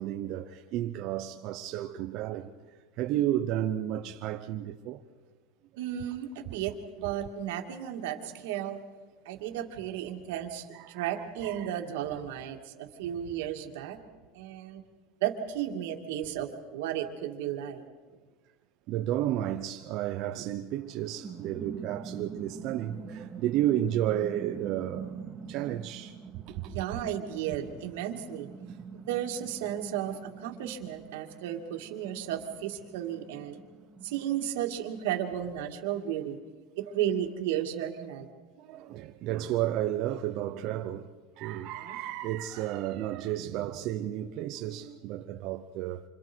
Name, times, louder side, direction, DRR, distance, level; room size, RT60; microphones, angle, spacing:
voice 1, 0.0-2.5 3.0-5.0 10.7-11.1 11.4-11.7 18.9-26.2 26.5-26.8 38.6-41.1 41.4-46.1, right 12 dB, 45° right, 0.8 m, -32 dB
voice 2, 5.8-8.8 9.3-14.0 14.3-14.8 15.2-17.8 26.6-28.5 28.9-33.6 34.0-36.4 36.8-38.3 41.8-42.0, right 10 dB, 75° right, 2.4 m, -34 dB
sound 1, 20.7-35.0, right 6 dB, 10° right, 2.3 m, -45 dB
28.0 x 26.0 x 4.6 m
supercardioid pair, 165°, 0 cm